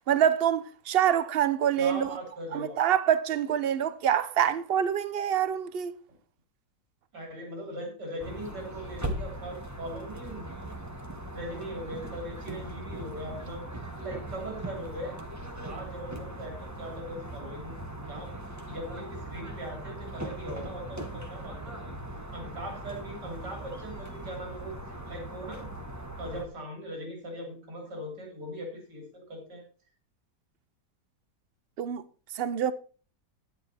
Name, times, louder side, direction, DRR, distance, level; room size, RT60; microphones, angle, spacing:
voice 1, 0.1-2.1 2.5-5.9 31.8-32.0 32.3-32.7, right 9 dB, 55° right, 0.6 m, -26 dB
voice 2, 1.8-2.8 7.1-10.6 11.3-13.7 14.0-15.2 15.6-17.8 18.1-18.3 18.7-22.0 22.3-24.8 25.1-25.7 26.2-29.6, equal, 90° right, 3.9 m, -40 dB
sound 1, 8.2-26.5, right 1 dB, 10° right, 1.0 m, -40 dB
10.0 x 9.8 x 4.2 m
omnidirectional pair, 1.8 m